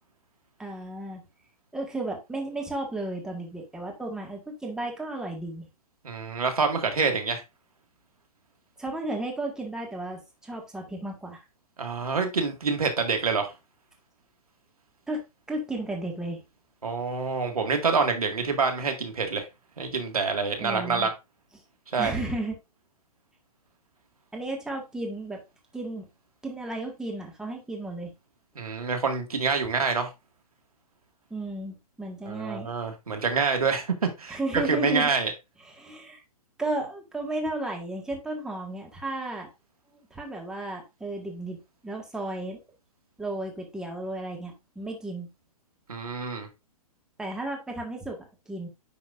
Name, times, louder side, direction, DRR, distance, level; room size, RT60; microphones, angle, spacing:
voice 1, 0.6-1.2 1.7-5.6 8.8-11.4 15.1-16.4 20.6-21.1 22.0-22.6 24.3-25.4 25.7-26.1 26.4-28.1 31.3-32.7 34.3-35.1 35.7-36.2 36.6-39.5 40.1-41.6 41.8-42.6 43.2-45.3 47.2-48.2 48.5-48.7, right 2 dB, 5° right, 1.6 m, -33 dB
voice 2, 6.0-7.4 11.8-13.5 16.8-19.5 19.8-21.1 21.9-22.1 28.6-30.1 32.2-35.3 45.9-46.5, right 4 dB, 75° right, 1.9 m, -26 dB
9.8 x 5.7 x 2.5 m
figure-of-eight pair, 115°, 19 cm